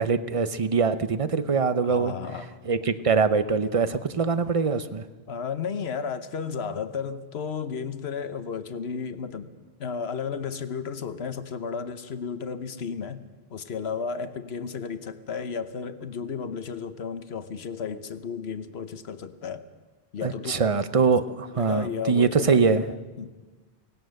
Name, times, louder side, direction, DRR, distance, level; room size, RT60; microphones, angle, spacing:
voice 1, 0.0-2.1 2.7-5.1 20.2-22.9, right 5 dB, 35° right, 0.8 m, -23 dB
voice 2, 1.8-2.6 5.3-9.5 9.8-13.2 13.5-19.7 20.1-20.7 21.6-23.3, left 6 dB, 85° left, 1.3 m, -33 dB
23.5 x 18.5 x 6.5 m
omnidirectional pair, 1.0 m